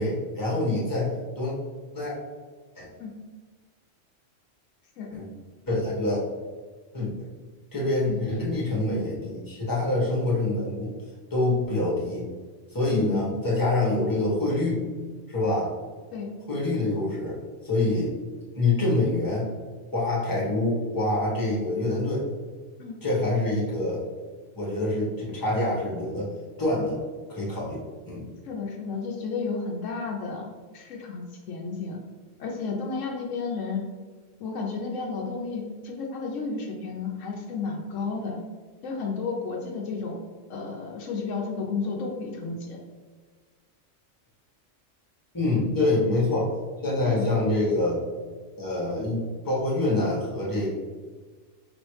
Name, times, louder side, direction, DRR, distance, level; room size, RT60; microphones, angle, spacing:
voice 1, 0.0-1.5 1.9-2.1 2.7-2.9 5.1-5.3 5.7-6.2 6.9-7.3 7.7-10.9 11.3-12.3 12.7-14.8 15.3-15.7 16.5-18.1 18.5-19.5 19.9-22.3 23.0-24.0 24.5-27.0 27.3-28.3 45.3-46.5 46.8-48.0 48.6-50.8, left 2 dB, 15° left, -6 dB, 1.2 m, -26 dB
voice 2, 12.9-13.2 16.1-16.3 22.8-23.0 28.4-32.0 32.4-33.8 34.4-38.4 38.8-40.2 40.5-42.8 47.0-47.2, left 4 dB, 75° left, 0 dB, 1.0 m, -32 dB
4.8 x 3.1 x 3.1 m, 1.5 s
omnidirectional pair, 1.3 m